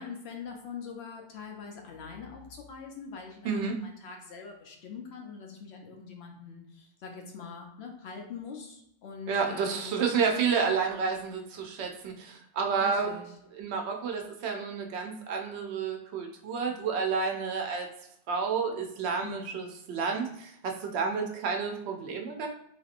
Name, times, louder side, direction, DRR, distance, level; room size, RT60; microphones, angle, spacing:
voice 1, 0.0-10.1 12.8-13.3 19.2-19.5, left 5 dB, 75° left, 2 dB, 0.9 m, -43 dB
voice 2, 3.4-3.8 9.3-13.1 13.5-17.9 18.3-22.5, right 5 dB, 75° right, 3 dB, 0.9 m, -30 dB
3.4 x 2.8 x 2.4 m, 0.79 s
omnidirectional pair, 1.1 m